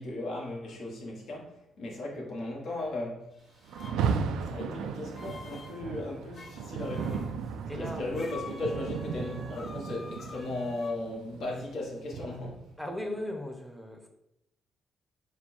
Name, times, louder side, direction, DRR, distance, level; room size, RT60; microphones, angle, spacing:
voice 1, 0.0-3.3 3.9-4.2 4.5-7.4 7.8-12.6, left 2 dB, 65° left, 1.4 m, -36 dB
sound 1, 3.4-4.0 4.8-5.8 6.3-7.3 8.1-11.0, left 3 dB, 40° left, 0.6 m, -47 dB
Rain, 3.7-12.8, right 6 dB, 85° right, 0.3 m, -35 dB
voice 2, 7.7-8.0 12.8-14.1, left 1 dB, 5° left, 0.8 m, -37 dB
4.3 x 2.2 x 4.3 m
cardioid pair, 90°, 0 cm